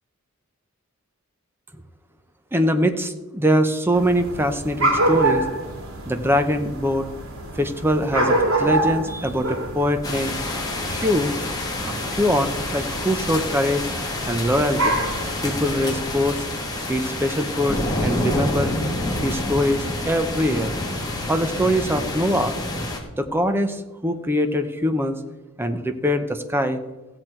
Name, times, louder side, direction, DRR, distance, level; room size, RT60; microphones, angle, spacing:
voice 1, 2.5-5.5 6.1-7.1 7.6-10.3 10.9-11.4 11.8-13.9 14.2-15.0 15.4-16.5 16.9-18.9 19.2-20.7 21.3-22.5 23.2-25.2 25.6-26.8, equal, 10° right, 7 dB, 0.8 m, -23 dB
sound 1, 3.9-16.2, right 2 dB, 80° right, 2.7 m, -27 dB
sound 2, 10.0-23.0, left 1 dB, 20° left, 1.7 m, -28 dB
15.5 x 8.0 x 4.5 m, 1.1 s
head